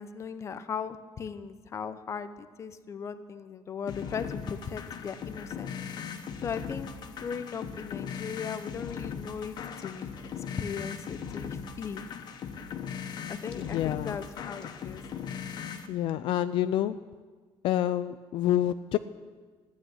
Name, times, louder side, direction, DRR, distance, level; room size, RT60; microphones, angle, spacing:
voice 1, 0.0-5.7 6.4-10.1 10.6-12.0 13.3-15.0, left 6 dB, 30° left, 12 dB, 0.7 m, -38 dB
sound 1, 3.9-15.9, left 7 dB, 45° left, 1.0 m, -39 dB
voice 2, 13.5-14.2 15.9-16.9 17.6-19.0, left 12 dB, 60° left, 12 dB, 0.4 m, -28 dB
15.0 x 8.6 x 10.0 m, 1.5 s
cardioid pair, 175°, 10 cm